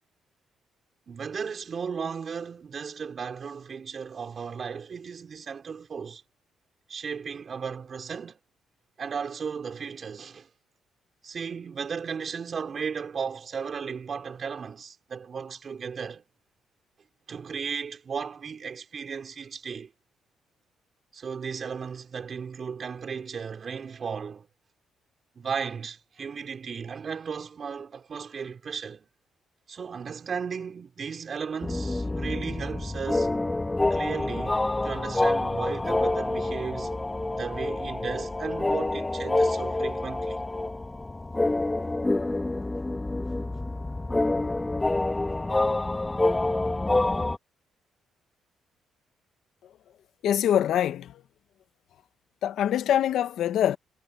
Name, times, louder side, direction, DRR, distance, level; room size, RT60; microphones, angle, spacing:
voice 1, 1.1-6.2 6.9-8.4 9.0-10.5 11.2-16.2 17.3-19.9 21.1-24.5 25.4-29.1 29.7-33.3 33.9-36.9 37.4-40.4 44.1-44.2, right 6 dB, 45° right, 3.5 m, -35 dB
sound 1, 31.6-47.4, left 2 dB, 15° left, 1.7 m, -27 dB
voice 2, 50.2-51.1 52.4-53.8, left 10 dB, 75° left, 1.3 m, -24 dB
cardioid pair, 90°, 0 cm